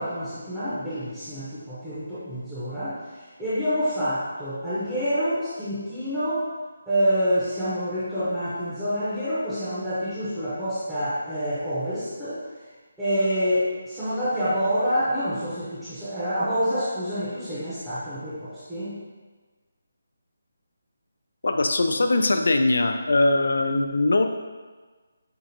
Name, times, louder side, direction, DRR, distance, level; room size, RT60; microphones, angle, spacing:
voice 1, 0.0-6.5 6.9-12.4 13.0-18.9, equal, 5° right, -15 dB, 0.8 m, -27 dB
voice 2, 21.4-24.3, left 2 dB, 70° left, 7 dB, 0.3 m, -21 dB
5.7 x 2.4 x 2.7 m, 1.4 s
hypercardioid pair, 170°, 0 cm